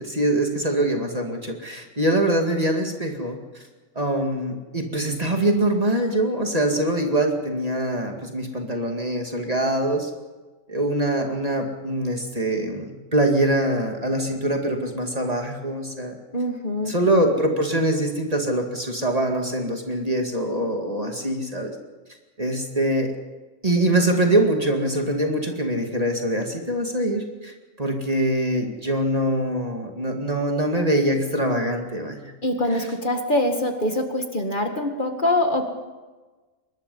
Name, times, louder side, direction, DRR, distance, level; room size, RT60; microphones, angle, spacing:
voice 1, 0.0-3.4 4.0-10.1 10.7-16.2 16.8-21.7 22.4-23.1 23.6-32.3 32.7-32.9, right 1 dB, 30° right, 3 dB, 2.3 m, -23 dB
voice 2, 16.3-16.9 32.4-35.6, left 1 dB, 40° left, 4 dB, 2.1 m, -24 dB
24.5 x 20.5 x 5.6 m, 1.3 s
omnidirectional pair, 1.4 m